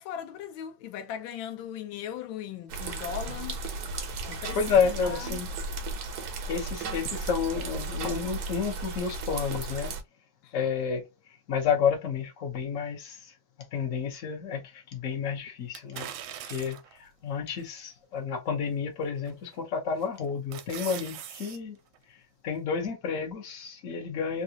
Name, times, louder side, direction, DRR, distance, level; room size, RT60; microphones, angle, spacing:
voice 1, 0.0-3.6 4.3-4.6 5.0-5.4 10.4-10.6, left 9 dB, 85° left, 1.3 m, -38 dB
sound 1, 2.7-10.0, right 3 dB, 65° right, 1.1 m, -35 dB
voice 2, 4.5-5.5 6.5-9.9 10.5-11.0 11.5-13.2 13.7-16.1 16.5-21.8 22.4-24.4, left 6 dB, 50° left, 1.2 m, -30 dB
sound 2, 15.7-17.0 17.6-17.7 19.3-19.6 20.0-21.6 21.9-22.0, right 10 dB, 85° right, 1.4 m, -41 dB
3.6 x 2.4 x 2.7 m
omnidirectional pair, 2.1 m